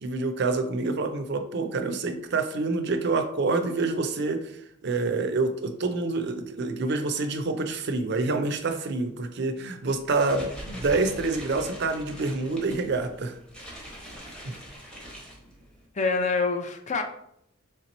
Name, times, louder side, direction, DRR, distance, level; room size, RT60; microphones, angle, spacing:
voice 1, 0.0-13.3 14.4-14.5, right 3 dB, 55° right, 7 dB, 0.4 m, -27 dB
sound 1, 9.9-15.9, equal, 5° left, 0.8 m, -43 dB
voice 2, 15.9-17.0, left 4 dB, 35° left, 5 dB, 0.4 m, -26 dB
3.4 x 2.9 x 4.0 m, 0.72 s
head